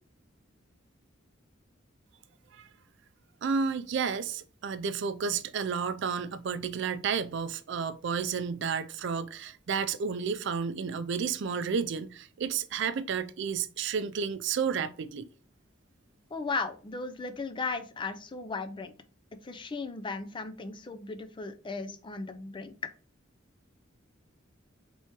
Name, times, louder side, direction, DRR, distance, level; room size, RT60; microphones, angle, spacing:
voice 1, 3.4-15.3, right 6 dB, 65° right, 0.4 m, -31 dB
voice 2, 16.3-18.9 19.4-22.7, left 3 dB, 25° left, 0.4 m, -36 dB
3.4 x 2.9 x 4.4 m
head